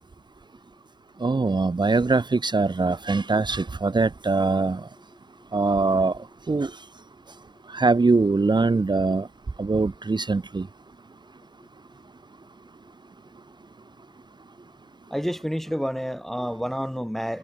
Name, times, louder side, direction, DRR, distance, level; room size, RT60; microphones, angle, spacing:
voice 1, 1.2-4.8 5.5-6.1 6.5-6.7 7.7-9.3 9.6-10.7, right 3 dB, 20° right, 1.6 m, -22 dB
voice 2, 15.1-17.4, equal, ahead, 1.5 m, -29 dB
cardioid pair, 90°, 20 cm